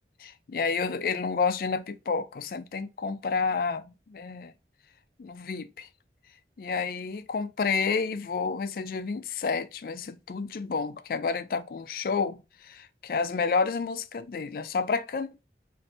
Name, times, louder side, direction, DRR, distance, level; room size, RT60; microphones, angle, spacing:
voice 1, 0.2-4.5 5.2-5.9 6.6-15.4, left 5 dB, 55° left, 0.3 m, -30 dB
3.2 x 2.6 x 2.6 m
head